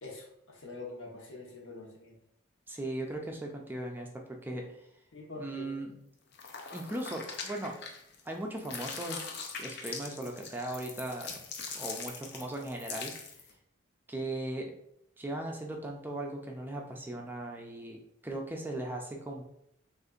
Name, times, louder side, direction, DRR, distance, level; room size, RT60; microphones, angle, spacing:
voice 1, 0.0-2.2 5.1-5.7, left 2 dB, 70° left, -1 dB, 1.1 m, -45 dB
voice 2, 2.7-4.1 4.4-4.8 5.4-5.9 6.7-7.7 8.3-9.2 9.6-11.4 11.7-13.1 14.1-14.7 15.2-19.4, right 1 dB, 10° right, 1 dB, 0.4 m, -38 dB
sound 1, 6.3-8.3 8.6-13.5, left 5 dB, 55° left, 0.6 m, -42 dB
6.4 x 2.5 x 2.5 m, 0.75 s
head